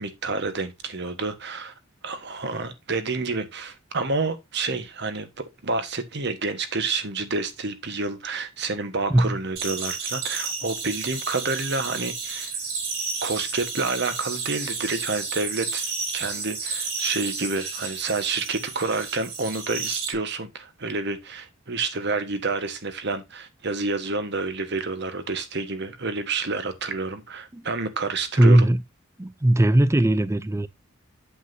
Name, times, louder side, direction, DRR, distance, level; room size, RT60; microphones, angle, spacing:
voice 1, 0.0-1.7 2.0-12.5 13.2-28.7, right 3 dB, 55° right, 1.3 m, -29 dB
sound 1, 9.6-20.1, right 4 dB, 75° right, 5.2 m, -32 dB
voice 2, 28.4-28.8 29.2-30.7, right 1 dB, 15° right, 0.4 m, -18 dB
8.5 x 7.9 x 2.7 m
head